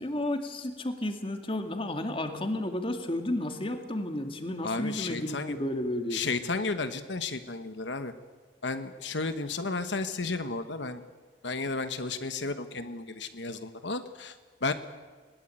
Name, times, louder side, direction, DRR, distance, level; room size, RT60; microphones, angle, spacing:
voice 1, 0.0-6.3, left 1 dB, 30° left, 6 dB, 2.3 m, -32 dB
voice 2, 4.6-5.6 6.1-8.1 8.6-11.0 11.4-14.3 14.6-14.7, left 3 dB, 80° left, 9 dB, 1.3 m, -33 dB
21.0 x 20.0 x 9.1 m, 1.5 s
head